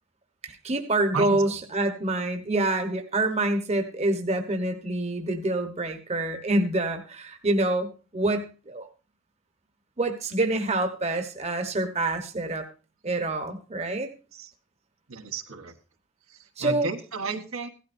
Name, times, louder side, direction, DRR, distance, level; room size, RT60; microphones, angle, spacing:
voice 1, 0.4-8.9 10.0-12.6 13.0-14.1 16.6-16.9, right 2 dB, 30° right, 6 dB, 1.1 m, -26 dB
voice 2, 1.1-1.6 14.3-14.5 15.1-15.7 16.3-17.7, right 4 dB, 75° right, 5 dB, 1.3 m, -33 dB
16.0 x 12.5 x 2.6 m, 0.34 s
head